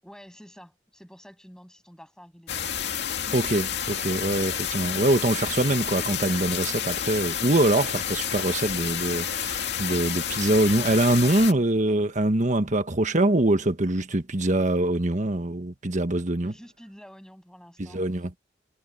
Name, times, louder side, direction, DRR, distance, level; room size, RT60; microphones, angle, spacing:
voice 1, 0.0-2.7 16.4-18.0, equal, 5° left, 7.6 m, -49 dB
sound 1, 2.5-11.5, left 8 dB, 65° left, 2.5 m, -30 dB
voice 2, 3.3-16.5 17.8-18.3, right 1 dB, 40° right, 1.4 m, -24 dB
head